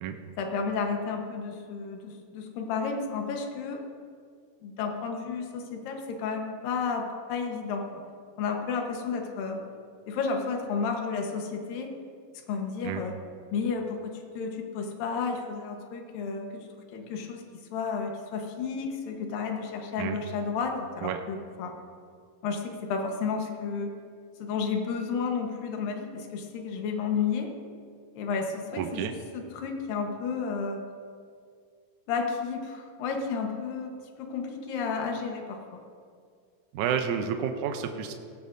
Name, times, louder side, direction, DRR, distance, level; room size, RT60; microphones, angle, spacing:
voice 1, 0.4-3.8 4.6-7.8 8.4-9.6 10.1-11.9 12.5-13.2 13.5-17.4 17.7-21.7 22.4-23.9 24.4-27.5 28.2-29.0 29.3-30.8 32.1-35.8, left 5 dB, 80° left, 2 dB, 2.9 m, -32 dB
voice 2, 28.7-29.1 36.7-38.1, right 8 dB, 75° right, 6 dB, 1.9 m, -30 dB
18.0 x 15.0 x 2.6 m, 2.2 s
omnidirectional pair, 4.0 m